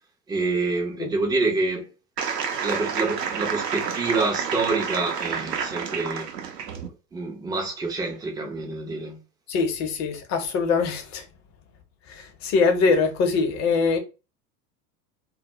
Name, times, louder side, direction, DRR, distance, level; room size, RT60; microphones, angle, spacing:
voice 1, 0.3-1.9 2.6-6.3 7.1-9.2, right 3 dB, 10° right, 0.4 m, -27 dB
sound 1, 2.2-6.9, right 7 dB, 90° right, 0.6 m, -29 dB
voice 2, 9.5-11.2 12.1-14.0, left 4 dB, 35° left, 0.6 m, -23 dB
2.2 x 2.0 x 2.7 m
figure-of-eight pair, 80°, 47 cm